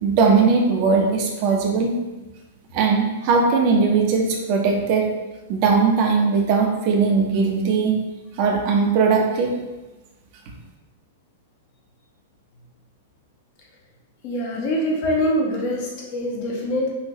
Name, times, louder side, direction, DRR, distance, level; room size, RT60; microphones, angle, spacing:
voice 1, 0.0-1.9 2.7-5.1 5.5-8.0 8.4-9.5, right 5 dB, 45° right, 1 dB, 0.9 m, -19 dB
voice 2, 14.2-16.9, equal, 45° left, -2 dB, 1.0 m, -24 dB
5.7 x 2.7 x 3.1 m, 1.1 s
figure-of-eight pair, 100°, 0 cm